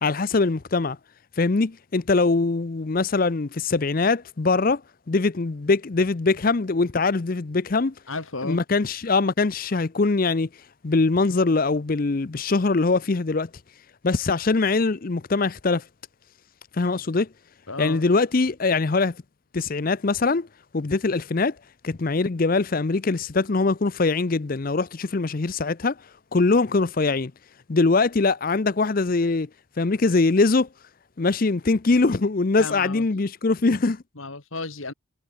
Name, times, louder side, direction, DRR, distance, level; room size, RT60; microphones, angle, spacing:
voice 1, 0.0-1.0 1.4-4.8 5.1-7.9 8.4-10.5 10.8-13.5 14.0-15.8 16.8-17.3 17.8-19.2 19.5-20.5 20.7-21.6 21.8-26.0 26.3-27.3 27.7-29.5 29.8-30.7 31.2-34.0, left 3 dB, 40° left, 0.6 m, -22 dB
voice 2, 8.1-8.6 17.7-18.0 32.6-33.0 34.2-34.9, left 3 dB, 75° left, 2.7 m, -33 dB
head